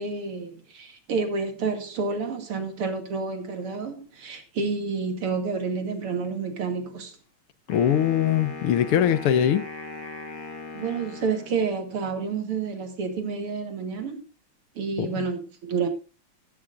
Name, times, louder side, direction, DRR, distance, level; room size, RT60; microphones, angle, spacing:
voice 1, 0.0-7.2 10.7-14.2 14.8-15.9, right 5 dB, 80° right, 3.3 m, -29 dB
voice 2, 7.7-9.6 15.0-15.3, left 9 dB, 80° left, 1.9 m, -22 dB
Wind instrument woodwind instrument, 7.7-11.9, left 3 dB, 50° left, 3.0 m, -39 dB
14.0 x 13.0 x 2.6 m
omnidirectional pair, 2.4 m